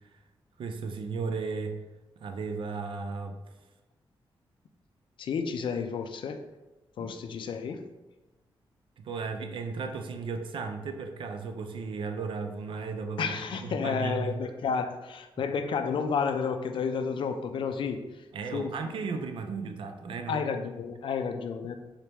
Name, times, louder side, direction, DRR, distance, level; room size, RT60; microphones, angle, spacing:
voice 1, 0.6-1.8 2.2-3.4 7.0-7.1 9.0-14.4 18.3-20.4, right 4 dB, 70° right, 6 dB, 0.5 m, -35 dB
voice 2, 5.2-6.5 7.0-7.9 13.2-18.0 18.5-18.7 20.3-21.8, left 6 dB, 65° left, 7 dB, 0.4 m, -31 dB
4.0 x 3.4 x 2.9 m, 1.1 s
wide cardioid pair, 125°, 9 cm